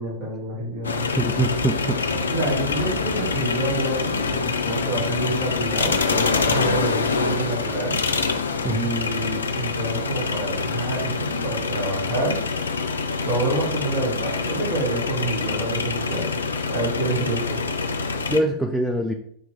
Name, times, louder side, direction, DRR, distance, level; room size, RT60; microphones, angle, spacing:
voice 1, 0.0-1.1 2.3-8.0 8.7-12.4 13.2-16.4 16.7-17.6, right 2 dB, 40° right, -3 dB, 1.9 m, -28 dB
sound 1, 0.8-18.4, left 4 dB, 70° left, 0.4 m, -25 dB
sound 2, 1.1-6.4, right 2 dB, 85° right, 0.9 m, -39 dB
voice 2, 1.2-2.0 8.6-8.9 18.3-19.1, right 1 dB, ahead, 2 dB, 0.3 m, -23 dB
4.7 x 3.0 x 3.4 m, 0.65 s
figure-of-eight pair, 90°, 0 cm